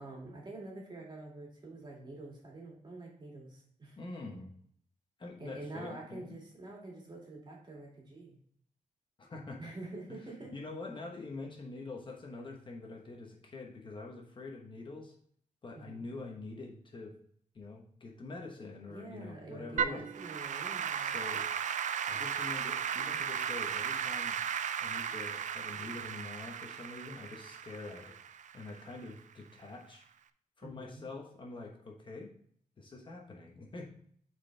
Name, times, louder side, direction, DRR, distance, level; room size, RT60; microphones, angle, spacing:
voice 1, 0.0-4.0 5.4-8.4 9.6-10.5 15.7-16.1 18.9-21.2 30.6-31.1, right 2 dB, 35° right, -2 dB, 2.2 m, -47 dB
voice 2, 4.0-4.5 5.2-6.4 9.2-9.7 10.1-10.2 10.5-15.1 15.6-17.1 17.5-20.1 21.0-21.5 22.1-24.4 24.8-28.2 28.5-30.1 30.6-32.3 32.8-33.9, left 3 dB, 35° left, 0 dB, 1.1 m, -45 dB
Applause / Keyboard (musical), 19.8-29.1, right 8 dB, 65° right, 0.4 m, -36 dB
8.5 x 4.3 x 3.3 m, 0.63 s
wide cardioid pair, 175°, 14 cm